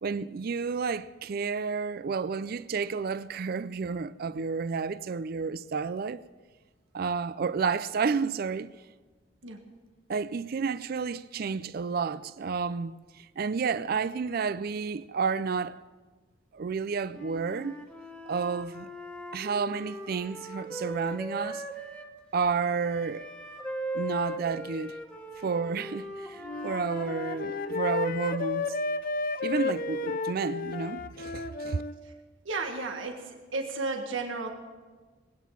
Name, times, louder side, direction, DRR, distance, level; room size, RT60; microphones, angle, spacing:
voice 1, 0.0-6.2 6.9-8.7 10.1-15.8 16.5-17.8 18.3-18.9 19.3-21.6 22.3-23.3 23.9-25.0 25.4-28.7 29.4-31.8, right 5 dB, 50° right, 0.4 m, -31 dB
Wind instrument woodwind instrument, 17.1-22.1 22.8-27.8, right 1 dB, 5° left, 1.4 m, -39 dB
Wind instrument woodwind instrument 2, 26.4-32.0, left 4 dB, 45° left, 0.7 m, -32 dB
voice 2, 32.4-34.5, right 3 dB, 90° right, 1.6 m, -33 dB
20.0 x 9.3 x 7.3 m
head